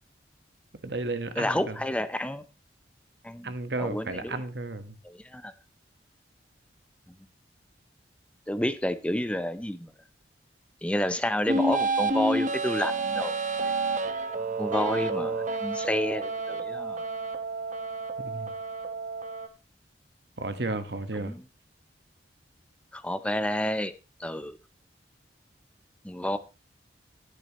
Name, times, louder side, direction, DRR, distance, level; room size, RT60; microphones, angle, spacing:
voice 1, 0.8-1.8 3.4-5.0 18.2-18.5 20.4-21.4, right 2 dB, 70° right, 1.4 m, -33 dB
voice 2, 1.4-2.4 3.2-3.5 3.8-4.4 5.0-5.5 8.5-9.9 10.8-13.4 13.6-13.7 14.6-17.0 21.2-21.4 22.9-23.9 24.2-24.6 26.0-26.4, left 1 dB, 5° left, 0.6 m, -30 dB
sound 1, 11.5-19.5, right 3 dB, 45° right, 1.1 m, -30 dB
13.0 x 10.5 x 3.0 m
head